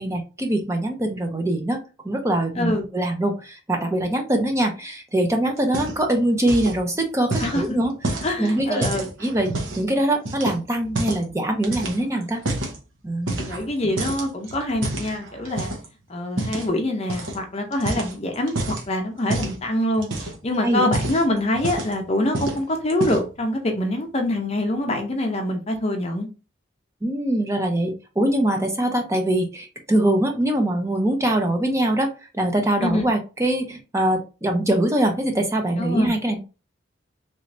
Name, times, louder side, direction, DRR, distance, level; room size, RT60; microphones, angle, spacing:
voice 1, 0.0-8.9 9.2-12.4 13.0-13.4 20.6-20.9 27.0-36.4, right 1 dB, 15° right, 0.5 m, -23 dB
sound 1, 5.6-6.2 6.4-6.8 7.3-9.8 10.3-11.3 11.6-12.8 13.3-13.7 14.0-15.9 16.4-16.7 17.1-17.4 17.7-18.9 19.3-19.6 20.0-20.5 20.8-22.0 22.3-22.6 22.9-23.4, right 2 dB, 75° right, 0.9 m, -28 dB
voice 2, 8.2-9.1 13.3-15.7 16.1-26.3 32.8-33.1 35.8-36.2, left 1 dB, 30° left, 0.6 m, -25 dB
3.1 x 3.1 x 2.6 m
head